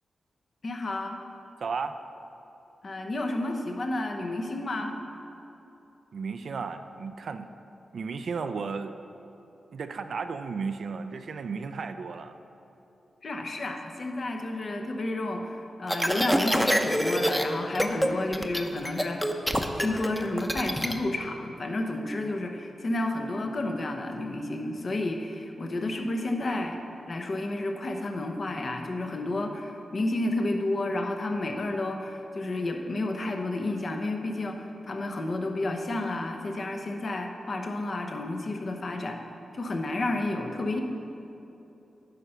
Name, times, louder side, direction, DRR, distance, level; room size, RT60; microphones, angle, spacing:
voice 1, 0.6-1.2 2.8-5.0 13.2-19.2 19.8-26.8 27.1-39.2 39.5-40.8, left 2 dB, 55° left, 4 dB, 0.9 m, -31 dB
voice 2, 1.6-2.0 6.1-7.5 7.9-8.9 9.7-12.4, right 5 dB, 70° right, 8 dB, 0.4 m, -34 dB
sound 1, 15.9-17.4 17.7-18.1 18.3-20.9, equal, ahead, 0.7 m, -26 dB
10.0 x 4.4 x 6.5 m, 2.9 s
cardioid pair, 45°, 0 cm